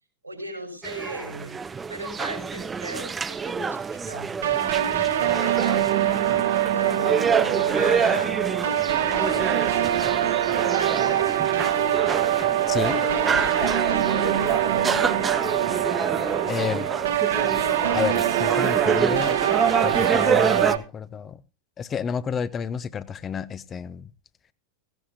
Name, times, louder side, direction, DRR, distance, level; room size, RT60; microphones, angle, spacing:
voice 1, 0.2-1.6 1.9-4.3 4.6-6.4 6.7-7.2 7.7-8.4 10.7-11.4 13.8-15.1, right 2 dB, 85° right, 5.4 m, -37 dB
sound 1, 0.8-20.8, right 5 dB, 15° right, 0.8 m, -27 dB
sound 2, 4.4-20.8, right 11 dB, 60° right, 1.5 m, -24 dB
voice 2, 12.7-13.0 16.5-16.9 17.9-19.4 19.8-21.4 21.8-24.1, left 7 dB, 25° left, 0.7 m, -30 dB
17.0 x 15.5 x 2.7 m
figure-of-eight pair, 90°, 0 cm